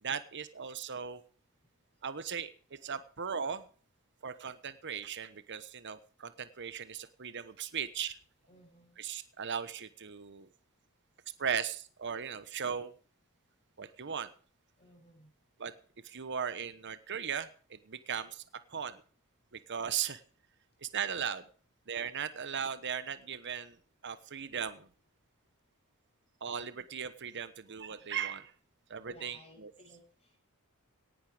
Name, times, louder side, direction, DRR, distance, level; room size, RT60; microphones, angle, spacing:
voice 1, 0.0-1.2 2.0-3.6 4.2-8.2 9.0-10.5 11.4-12.9 13.8-14.3 15.6-15.7 16.0-18.4 18.7-19.0 19.7-20.2 20.8-21.4 21.9-23.8 24.0-24.9 26.4-28.5 28.9-29.7, right 7 dB, 55° right, 13 dB, 1.1 m, -37 dB
voice 2, 8.5-8.9 14.8-15.3 29.1-30.4, left 1 dB, 30° left, 1 dB, 7.7 m, -59 dB
18.0 x 11.5 x 5.0 m, 0.42 s
head